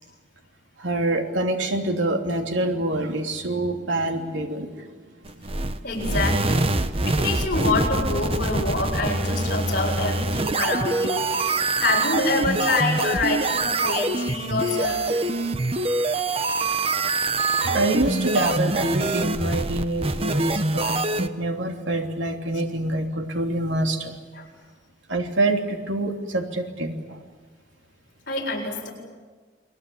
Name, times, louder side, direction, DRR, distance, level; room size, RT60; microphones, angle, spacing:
voice 1, 0.8-4.9 5.6-5.7 6.0-6.3 15.0-15.2 17.6-24.1 25.1-27.2, right 2 dB, 85° right, 4 dB, 2.9 m, -26 dB
sound 1, 5.3-21.3, right 2 dB, 30° right, 1.1 m, -25 dB
voice 2, 5.8-6.7 7.0-11.3 11.7-15.1 17.3-17.4 24.4-24.5 28.3-28.9, left 3 dB, 50° left, -1 dB, 7.4 m, -26 dB
29.5 x 22.5 x 8.6 m, 1.4 s
head